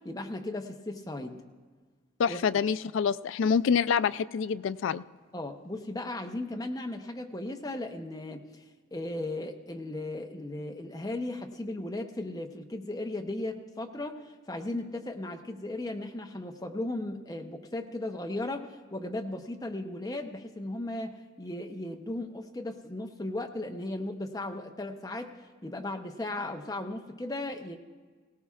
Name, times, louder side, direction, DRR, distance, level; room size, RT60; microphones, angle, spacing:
voice 1, 0.0-1.4 2.3-2.6 5.3-8.6 8.9-25.3 25.6-27.8, left 2 dB, 15° left, 4 dB, 0.7 m, -36 dB
voice 2, 2.2-5.0, left 6 dB, 70° left, 14 dB, 0.3 m, -26 dB
19.0 x 17.5 x 2.4 m, 1.4 s
head